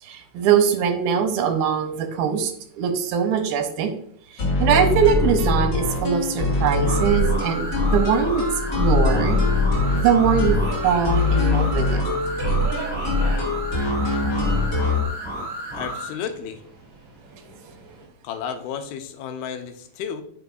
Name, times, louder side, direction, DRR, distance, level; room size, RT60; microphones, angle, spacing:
voice 1, 0.0-3.9 4.3-8.4 8.8-9.4 9.9-10.6 10.8-12.0, right 7 dB, 80° right, 6 dB, 2.5 m, -22 dB
sound 1, 4.4-15.0, left 2 dB, 35° left, 2.1 m, -22 dB
Subway metro underground, 5.7-18.1, right 3 dB, 40° right, 4.0 m, -43 dB
sound 2, 6.8-16.1, right 1 dB, 15° right, 2.1 m, -32 dB
voice 2, 15.7-16.6 18.2-20.2, left 7 dB, 85° left, 7 dB, 2.6 m, -32 dB
9.3 x 6.0 x 2.6 m, 0.64 s
omnidirectional pair, 4.5 m